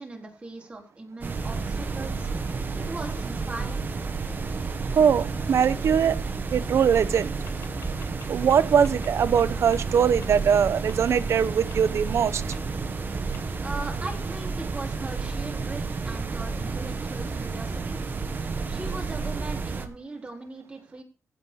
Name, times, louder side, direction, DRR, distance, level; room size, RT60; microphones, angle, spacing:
voice 1, 0.0-3.9 13.6-18.0 18.7-21.0, right 2 dB, 25° right, 0 dB, 4.0 m, -39 dB
sound 1, 1.2-19.9, right 4 dB, 45° right, 1.9 m, -31 dB
voice 2, 4.9-6.2 6.5-7.3 8.3-12.4, right 7 dB, 75° right, 13 dB, 1.0 m, -21 dB
sound 2, 7.1-8.5 8.8-9.1 9.4-9.5 9.7-9.8 10.2-10.3 10.9-11.0 11.7-11.8 12.5-12.6 13.3-13.4, left 7 dB, 85° left, 1.8 m, -45 dB
16.0 x 5.6 x 6.4 m, 0.34 s
wide cardioid pair, 130°, 5 cm